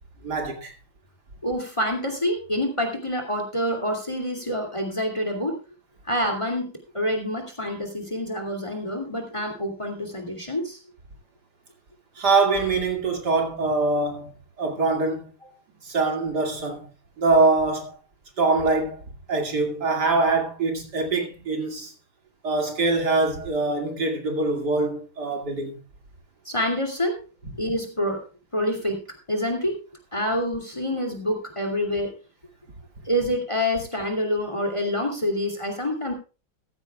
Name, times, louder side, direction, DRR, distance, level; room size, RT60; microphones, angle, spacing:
voice 1, 0.2-0.7 12.2-14.3 14.6-15.2 15.8-16.9 17.2-17.9 18.4-19.0 19.3-21.9 22.4-25.7, right 3 dB, 55° right, 2.7 m, -23 dB
voice 2, 1.4-5.6 6.0-10.8 26.4-27.2 27.6-28.2 28.5-29.8 30.1-32.1 33.0-36.1, equal, 15° left, 2.5 m, -27 dB
15.0 x 14.5 x 2.3 m
omnidirectional pair, 2.2 m